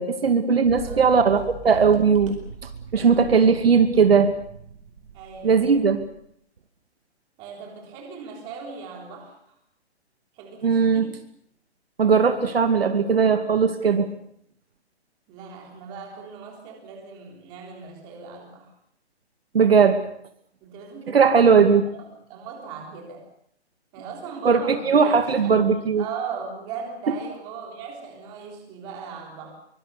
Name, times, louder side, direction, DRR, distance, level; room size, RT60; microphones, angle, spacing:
voice 1, 0.0-2.4 2.9-4.3 5.4-6.0 10.6-11.1 12.0-14.1 19.5-20.0 21.1-21.9 24.4-26.0, right 5 dB, 60° right, 7 dB, 2.4 m, -18 dB
sound 1, 0.6-6.2, right 6 dB, 30° right, 4.6 m, -40 dB
voice 2, 0.8-1.3 5.1-5.9 7.4-9.6 10.3-11.2 15.3-18.7 20.6-23.2 23.9-29.5, right 6 dB, 15° right, 1 dB, 3.6 m, -39 dB
24.5 x 24.0 x 6.8 m, 0.69 s
hypercardioid pair, 180°, 34 cm